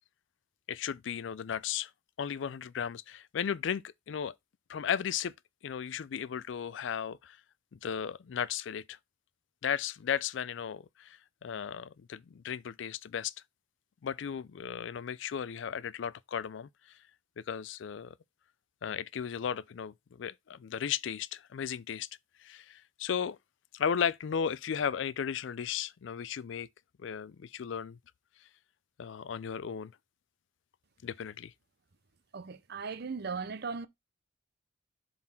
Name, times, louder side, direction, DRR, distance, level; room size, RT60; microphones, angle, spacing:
voice 1, 0.7-1.9 2.2-4.3 4.7-5.3 5.6-7.4 7.7-9.0 9.6-13.3 14.0-16.7 17.4-18.1 18.8-22.1 22.4-23.4 23.7-26.7 27.0-28.0 29.0-29.9 31.0-31.5, left 8 dB, 65° left, 0.4 m, -35 dB
voice 2, 32.3-33.9, right 5 dB, 55° right, 0.6 m, -37 dB
7.3 x 4.0 x 4.3 m
head